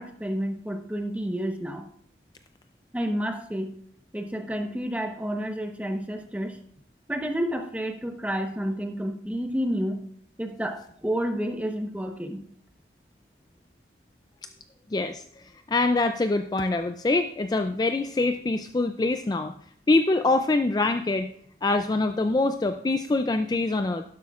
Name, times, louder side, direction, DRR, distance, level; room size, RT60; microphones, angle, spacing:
voice 1, 0.0-1.9 2.9-3.7 4.1-6.6 7.1-10.0 10.4-12.4, equal, 10° right, 5 dB, 0.9 m, -30 dB
voice 2, 14.9-15.2 15.7-19.5 19.9-21.3 21.6-24.0, left 2 dB, 20° left, 8 dB, 0.3 m, -24 dB
12.0 x 11.5 x 2.4 m, 0.66 s
head